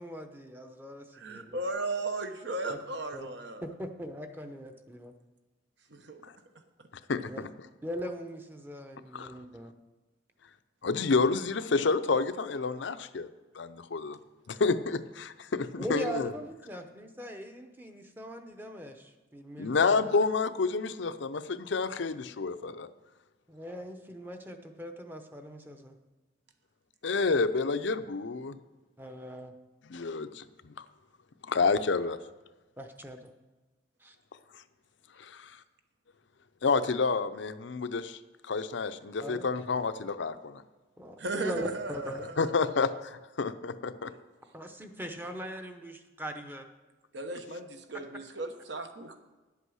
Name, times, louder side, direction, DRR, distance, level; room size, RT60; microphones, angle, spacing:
voice 1, 0.0-1.6 2.7-2.8 3.1-3.3 3.6-5.1 7.3-7.4 7.8-9.7 15.8-20.0 23.5-25.9 29.0-29.5 32.8-33.3 34.0-34.2 39.2-39.8 41.0-42.3 44.5-46.7, equal, 10° right, 5 dB, 0.8 m, -40 dB
voice 2, 1.1-3.7 5.9-6.2 41.2-42.5 44.1-44.2 47.1-49.2, right 2 dB, 60° right, 6 dB, 1.1 m, -36 dB
voice 3, 7.1-7.5 9.1-9.3 10.8-13.3 13.5-14.2 14.5-16.3 19.6-22.9 27.0-28.6 29.9-30.7 31.5-32.2 35.2-35.5 36.6-38.2 38.4-40.6 42.4-44.1, left 4 dB, 70° left, 12 dB, 0.6 m, -29 dB
10.5 x 8.2 x 6.3 m, 1.2 s
head